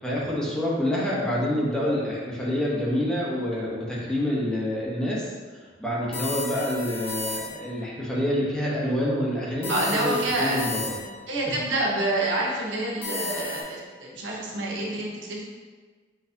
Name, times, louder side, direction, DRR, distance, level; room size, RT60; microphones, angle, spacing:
voice 1, 0.0-10.9, left 1 dB, 5° left, -6 dB, 0.9 m, -27 dB
sound 1, 6.1-7.8 9.6-11.3 13.0-13.6, left 3 dB, 30° left, 1.2 m, -34 dB
voice 2, 9.7-10.6 11.3-15.4, right 1 dB, 90° right, -3 dB, 0.9 m, -27 dB
4.2 x 4.2 x 2.7 m, 1.4 s
head